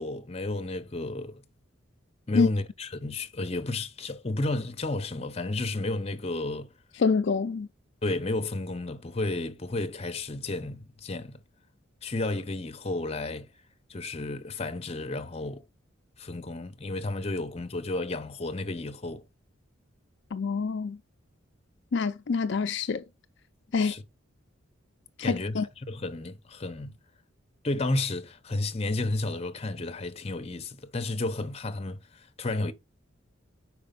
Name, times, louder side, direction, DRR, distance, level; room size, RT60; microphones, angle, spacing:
voice 1, 0.0-1.4 2.3-6.7 8.0-11.3 12.0-13.5 13.9-15.6 16.2-19.2 23.8-24.0 25.2-25.6 25.9-27.0 27.6-32.7, left 2 dB, 30° left, 0.7 m, -32 dB
voice 2, 7.0-7.7 20.3-21.0 21.9-23.0 23.7-23.9 25.2-25.7, left 5 dB, 60° left, 0.4 m, -26 dB
5.0 x 4.9 x 5.2 m
head